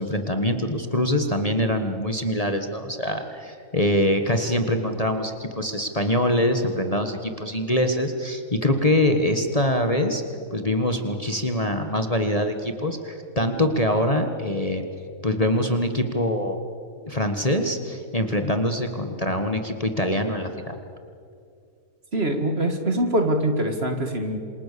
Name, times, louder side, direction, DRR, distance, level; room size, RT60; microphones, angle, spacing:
voice 1, 0.0-10.2 10.5-14.8 15.2-16.6 17.0-20.7, left 1 dB, 25° left, 5 dB, 1.6 m, -24 dB
voice 2, 22.1-24.4, right 1 dB, 45° right, 5 dB, 2.4 m, -23 dB
27.5 x 27.5 x 7.0 m, 2.4 s
omnidirectional pair, 1.5 m